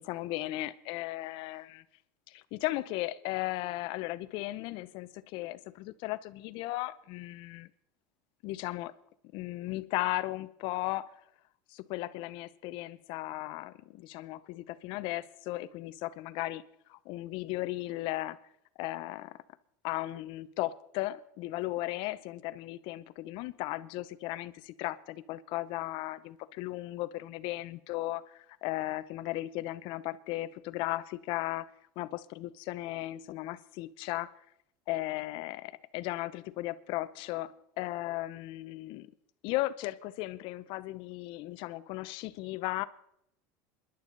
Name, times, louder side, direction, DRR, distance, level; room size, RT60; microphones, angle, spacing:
voice 1, 0.0-1.8 2.3-7.7 8.4-8.9 9.3-11.1 11.7-16.6 16.9-18.4 18.8-19.4 19.8-31.7 32.0-34.3 34.9-39.1 39.4-42.8, left 17 dB, 60° left, 0.8 m, -36 dB
27.0 x 11.0 x 4.0 m
supercardioid pair, 110°, 9 cm